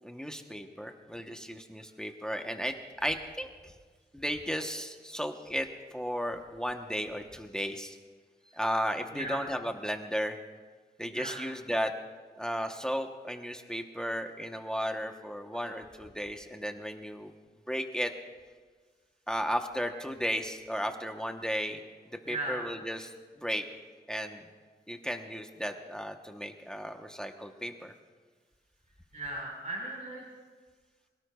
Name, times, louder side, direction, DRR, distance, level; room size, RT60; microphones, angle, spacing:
voice 1, 0.0-2.7 3.0-3.7 4.1-5.7 5.9-8.0 8.5-10.4 11.0-11.9 12.4-17.3 17.7-18.1 19.3-21.8 22.3-23.7 24.1-24.5 24.9-27.9, equal, 5° left, 4 dB, 1.0 m, -34 dB
voice 2, 22.2-22.6 29.1-30.2, right 1 dB, 45° right, -3 dB, 4.8 m, -37 dB
26.0 x 17.5 x 2.3 m, 1.5 s
wide cardioid pair, 110°, 18 cm